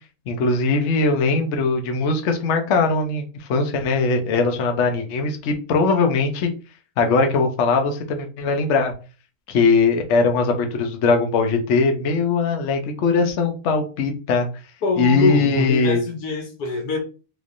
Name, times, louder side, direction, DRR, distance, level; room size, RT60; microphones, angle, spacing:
voice 1, 0.3-6.5 7.0-8.9 9.5-14.5 15.0-16.0, left 4 dB, 60° left, 0.8 m, -20 dB
voice 2, 14.8-17.0, left 3 dB, 80° left, 1.3 m, -23 dB
3.3 x 3.1 x 2.5 m
omnidirectional pair, 1.6 m